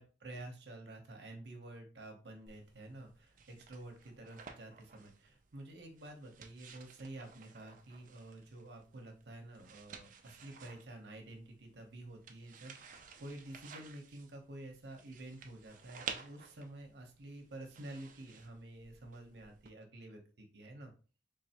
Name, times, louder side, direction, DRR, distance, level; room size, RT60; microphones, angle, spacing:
voice 1, 0.0-20.9, right 1 dB, 65° right, 3 dB, 0.9 m, -50 dB
sound 1, 2.5-19.7, right 6 dB, 45° right, 0.4 m, -53 dB
3.7 x 3.2 x 2.9 m, 0.37 s
head